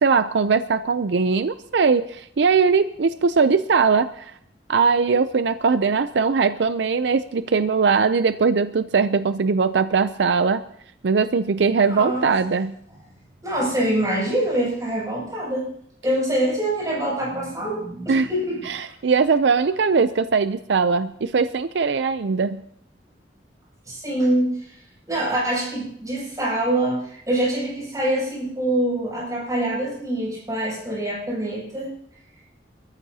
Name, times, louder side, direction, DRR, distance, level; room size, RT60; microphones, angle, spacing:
voice 1, 0.0-4.3 4.7-10.6 11.0-12.7 18.1-18.3 18.6-22.6, right 5 dB, 75° right, 12 dB, 0.5 m, -20 dB
voice 2, 11.8-12.3 13.4-15.7 16.0-18.9 23.9-24.7 25.1-31.9, right 1 dB, 20° right, -6 dB, 7.3 m, -25 dB
28.0 x 14.0 x 2.8 m, 0.69 s
head